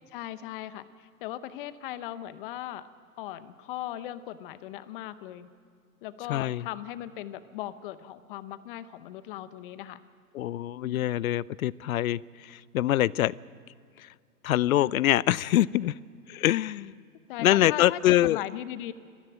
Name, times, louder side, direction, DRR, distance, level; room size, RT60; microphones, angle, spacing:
voice 1, 0.1-2.9 3.2-5.5 6.0-10.0 10.7-11.0 17.3-18.9, left 13 dB, 35° left, 14 dB, 0.9 m, -38 dB
voice 2, 6.3-6.7 10.3-13.3 14.4-15.9 16.3-17.0 17.4-18.4, left 14 dB, 65° left, 23 dB, 0.6 m, -24 dB
21.0 x 14.5 x 9.1 m, 2.1 s
hypercardioid pair, 140°, 45 cm